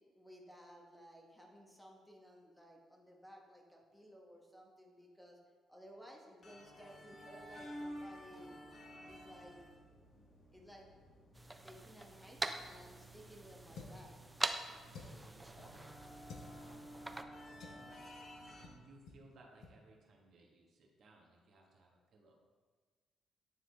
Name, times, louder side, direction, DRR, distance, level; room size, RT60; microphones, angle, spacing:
voice 1, 0.1-5.4 5.7-8.6 9.0-9.6 10.5-10.9 11.6-14.1, equal, 5° left, 0 dB, 1.1 m, -57 dB
sound 1, 6.4-18.7, equal, 45° left, 1.1 m, -53 dB
sound 2, 11.3-17.2, right 1 dB, 10° right, 0.4 m, -44 dB
sound 3, 13.7-14.1 14.9-15.3 16.2-16.5 17.6-17.9 18.6-18.8 19.1-19.2 19.6-19.8, left 4 dB, 70° left, 0.8 m, -51 dB
voice 2, 14.8-15.8 17.4-22.4, right 2 dB, 60° right, 0 dB, 1.2 m, -63 dB
9.6 x 3.7 x 3.3 m, 1.5 s
cardioid pair, 90°, 0 cm